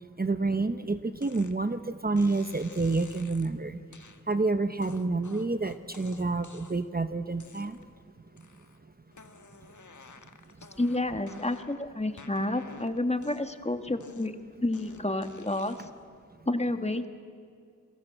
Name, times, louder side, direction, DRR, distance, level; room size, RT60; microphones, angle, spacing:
voice 1, 0.2-3.8 4.3-7.8, right 3 dB, 30° right, 10 dB, 0.9 m, -28 dB
sound 1, 1.2-1.6 2.2-3.5 3.9-4.2 4.8-6.9 7.4-8.0 8.4-8.8 9.1-11.8 12.2-13.6 14.0-16.0, left 4 dB, 75° left, 1.7 m, -53 dB
voice 2, 10.8-15.9 16.4-17.1, left 2 dB, 20° left, 8 dB, 1.7 m, -30 dB
28.5 x 22.5 x 7.9 m, 2.2 s
wide cardioid pair, 75°, 30 cm